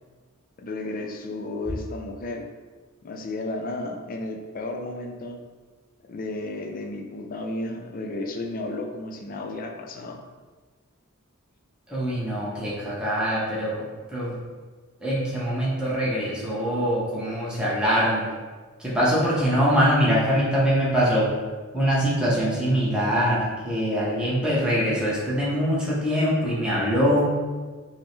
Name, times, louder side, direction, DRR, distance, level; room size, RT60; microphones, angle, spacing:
voice 1, 0.6-2.5 3.0-5.4 6.1-10.2, left 2 dB, 40° left, 3 dB, 0.4 m, -33 dB
voice 2, 11.9-13.8 14.1-14.4 15.0-18.2 18.8-21.3 21.7-27.3, equal, 5° right, -8 dB, 0.8 m, -23 dB
5.2 x 2.1 x 3.1 m, 1.4 s
head